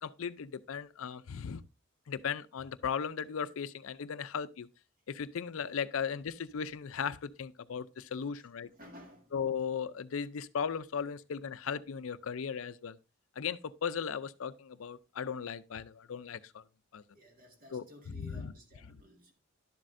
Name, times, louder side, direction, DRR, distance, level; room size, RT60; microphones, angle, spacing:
voice 1, 0.0-1.6 2.1-4.7 5.1-8.7 9.3-13.0 13.4-16.6 16.9-17.0 17.7-17.8 18.1-18.5 18.9-19.0, left 7 dB, 70° left, 0.5 m, -37 dB
voice 2, 8.7-9.6 17.1-19.3, equal, 40° right, 1.9 m, -55 dB
11.5 x 7.5 x 2.6 m
head